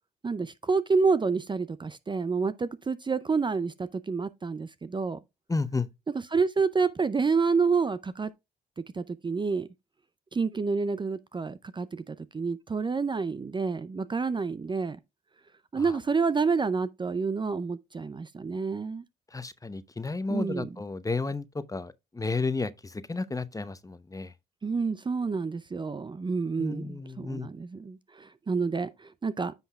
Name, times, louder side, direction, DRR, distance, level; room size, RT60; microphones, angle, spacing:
voice 1, 0.2-5.2 6.3-8.3 8.8-9.7 10.3-15.0 15.7-19.0 20.3-20.7 24.6-29.5, right 4 dB, 25° right, 0.5 m, -28 dB
voice 2, 5.5-5.9 15.8-16.0 19.3-24.3 26.6-27.5, left 3 dB, 20° left, 0.8 m, -32 dB
9.9 x 5.6 x 2.4 m
supercardioid pair, 60°, 18 cm